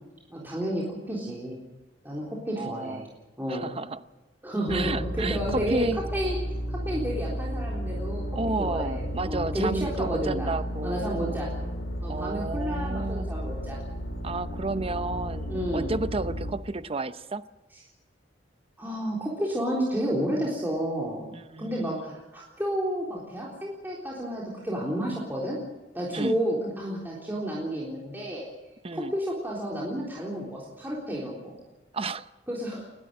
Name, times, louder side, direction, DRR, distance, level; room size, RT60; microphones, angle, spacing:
voice 1, 0.3-1.6 2.0-3.1 3.4-3.7 4.4-5.8 6.1-6.4 6.7-8.2 8.6-10.5 10.8-11.5 12.0-13.8 15.5-15.9 18.8-21.3 21.6-25.6 25.9-28.4 28.9-31.5 32.5-32.9, equal, 10° right, -5 dB, 3.8 m, -31 dB
voice 2, 2.6-3.1 3.5-4.0 4.7-6.0 8.3-11.4 12.1-13.3 14.2-17.4 21.3-22.0 26.1-26.3 28.8-29.1 31.9-32.2, right 3 dB, 30° right, 12 dB, 0.8 m, -32 dB
sound 1, 4.7-16.5, equal, 75° left, 3.5 m, -33 dB
30.0 x 12.5 x 7.7 m, 1.1 s
head